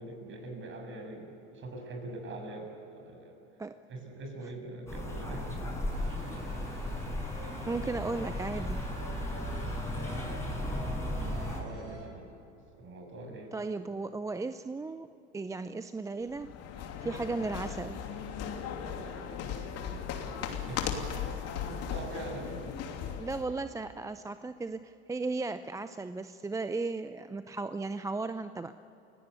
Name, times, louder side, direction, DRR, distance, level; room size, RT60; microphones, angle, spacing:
voice 1, 0.0-3.3 3.9-5.7 7.6-8.2 11.0-12.3 12.7-13.6 19.8-20.4 20.7-21.0 21.7-22.6, right 2 dB, 35° right, 3 dB, 6.9 m, -43 dB
sound 1, 4.9-11.6, left 1 dB, 10° left, 7.1 m, -35 dB
sound 2, 5.9-12.1, right 1 dB, 60° right, 5.0 m, -50 dB
voice 2, 7.1-8.8 13.5-15.1 15.3-16.5 16.8-18.0 23.2-28.7, right 3 dB, 10° right, 11 dB, 0.6 m, -36 dB
sound 3, 16.3-23.5, left 7 dB, 50° left, 3.0 m, -37 dB
30.0 x 17.0 x 8.4 m, 2.9 s
hypercardioid pair, 90°, 33 cm